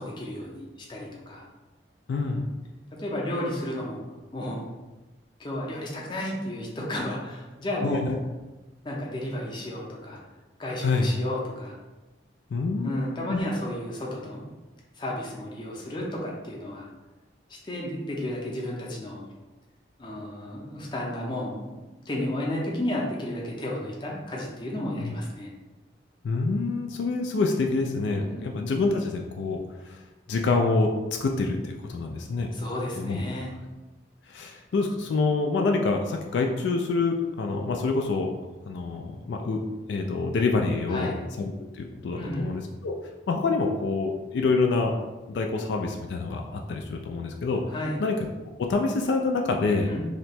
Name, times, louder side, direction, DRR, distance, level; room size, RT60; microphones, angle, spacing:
voice 1, 0.0-1.4 3.0-4.0 4.3-4.7 5.4-8.1 8.8-10.2 10.6-11.8 12.8-14.4 15.0-16.9 17.5-19.2 20.0-25.5 28.2-28.5 32.5-33.5 40.9-41.2 42.2-42.5 47.7-48.0 49.9-50.0, left 1 dB, 25° left, -3 dB, 0.6 m, -32 dB
voice 2, 2.1-2.5 7.7-8.2 10.8-11.1 12.5-13.4 25.0-25.1 26.2-30.0 30.3-30.9 31.2-32.5 33.0-33.2 34.3-38.3 38.7-39.6 39.9-43.0 43.3-44.9 45.3-47.6 48.0-48.2 48.6-49.9, left 3 dB, 70° left, 2 dB, 0.3 m, -26 dB
2.8 x 2.2 x 4.2 m, 1.1 s
head